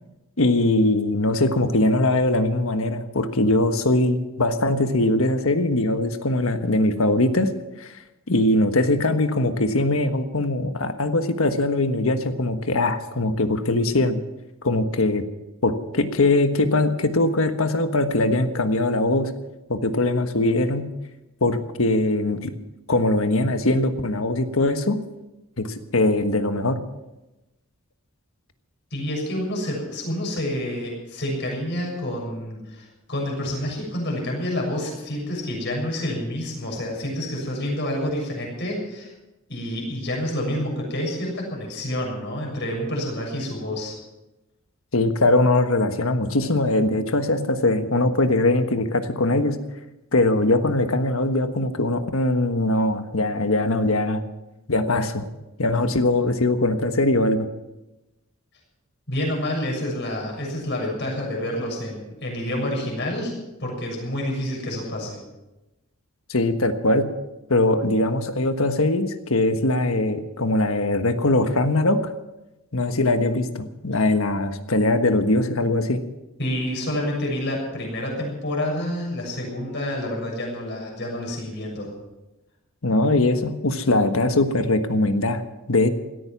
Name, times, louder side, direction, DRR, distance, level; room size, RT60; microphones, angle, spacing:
voice 1, 0.4-7.5 7.8-7.9 8.3-14.2 14.6-15.2 15.6-19.3 19.7-20.9 21.4-22.5 22.9-25.0 25.6-26.8 44.9-49.6 50.1-54.2 54.7-55.2 55.6-57.5 66.3-67.1 67.5-72.1 72.7-76.0 82.8-85.9, left 2 dB, 80° left, 8 dB, 1.4 m, -21 dB
voice 2, 28.9-39.1 39.5-43.9 59.1-63.3 63.6-65.2 76.4-81.9, left 1 dB, 55° left, 0 dB, 6.8 m, -28 dB
17.0 x 14.0 x 6.0 m, 1.0 s
head